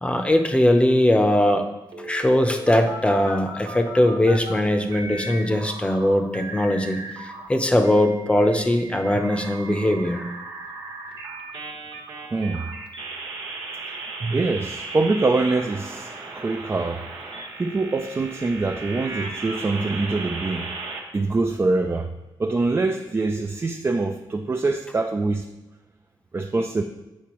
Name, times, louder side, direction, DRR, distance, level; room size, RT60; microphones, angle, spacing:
voice 1, 0.0-1.6 2.0-10.3, left 1 dB, 15° left, 5 dB, 0.7 m, -20 dB
sound 1, 1.9-4.6 4.9-7.5 7.8-21.0, right 3 dB, 90° right, 1.3 m, -36 dB
voice 2, 12.3-12.7 13.9-14.0 14.2-17.0 17.6-20.7 21.1-22.1 22.4-25.5 26.3-26.8, right 3 dB, 30° right, 4 dB, 0.4 m, -24 dB
8.5 x 5.6 x 3.1 m, 0.99 s
wide cardioid pair, 110°, 8 cm